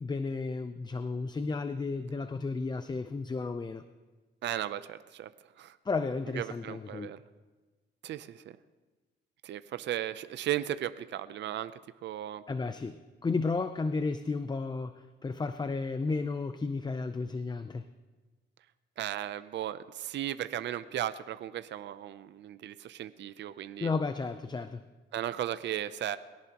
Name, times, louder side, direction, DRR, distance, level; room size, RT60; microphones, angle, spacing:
voice 1, 0.0-3.8 5.8-7.1 12.5-17.8 23.8-24.8, left 4 dB, 20° left, 10 dB, 0.6 m, -33 dB
voice 2, 4.4-5.3 5.6-5.8 6.3-7.2 8.0-8.6 9.4-11.7 12.0-12.4 19.0-23.9 25.1-26.2, right 12 dB, 65° right, 13 dB, 0.6 m, -36 dB
22.0 x 17.0 x 3.0 m, 1.3 s
cardioid pair, 90°, 20 cm